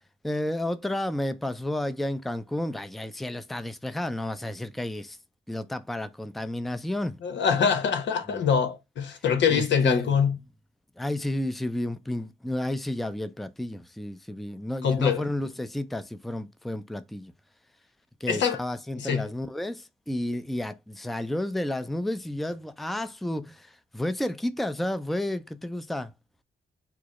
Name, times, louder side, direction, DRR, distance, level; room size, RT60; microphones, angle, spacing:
voice 1, 0.2-5.2 5.5-7.2 8.3-8.5 9.5-10.1 11.0-17.3 18.2-26.1, left 1 dB, ahead, 0.5 m, -31 dB
voice 2, 7.2-10.3 14.8-15.2 18.3-18.6 19.0-19.2, left 6 dB, 80° left, 0.9 m, -24 dB
4.7 x 2.0 x 3.6 m
cardioid pair, 60°, 18 cm